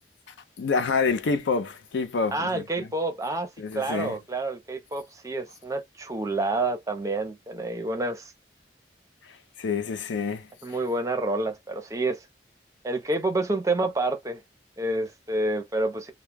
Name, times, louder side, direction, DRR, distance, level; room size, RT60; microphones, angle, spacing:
voice 1, 0.3-2.9 3.6-4.2 9.2-10.5, left 4 dB, 85° left, 0.5 m, -28 dB
voice 2, 2.3-8.3 10.6-12.2 12.8-14.4 14.8-16.1, right 2 dB, 20° right, 0.5 m, -28 dB
2.2 x 2.1 x 3.2 m
head